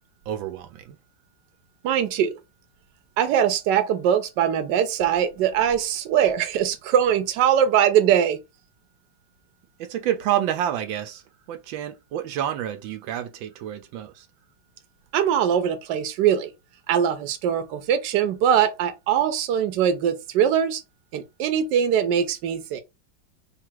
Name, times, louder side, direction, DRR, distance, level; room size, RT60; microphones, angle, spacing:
voice 1, 0.3-1.0 9.8-14.3, right 11 dB, 85° right, 1.4 m, -29 dB
voice 2, 1.8-2.3 3.2-8.4 15.1-16.5 16.9-20.8 21.1-22.8, right 9 dB, 70° right, 1.3 m, -22 dB
3.6 x 2.4 x 4.5 m
omnidirectional pair, 2.1 m